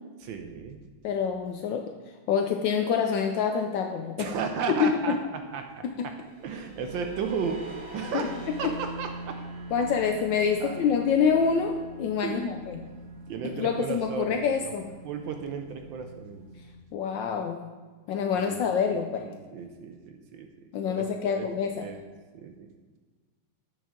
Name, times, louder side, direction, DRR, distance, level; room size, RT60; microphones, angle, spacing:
voice 1, 0.2-0.8 4.2-5.2 5.5-6.1 6.4-9.4 10.6-10.8 12.2-12.6 12.9-14.7 15.0-16.4 18.3-19.0 19.2-20.5 20.9-21.1 21.4-22.1 22.3-22.7, right 6 dB, 75° right, 5 dB, 1.2 m, -35 dB
voice 2, 1.0-1.9 2.3-4.3 4.8-5.2 5.8-6.1 8.1-8.3 9.7-11.7 12.0-12.8 13.5-14.9 16.9-17.7 18.1-19.2 20.7-21.8, left 6 dB, 75° left, 4 dB, 1.1 m, -26 dB
sound 1, 6.0-16.7, right 2 dB, 55° right, 2.8 m, -43 dB
8.1 x 6.2 x 3.6 m, 1.4 s
omnidirectional pair, 2.4 m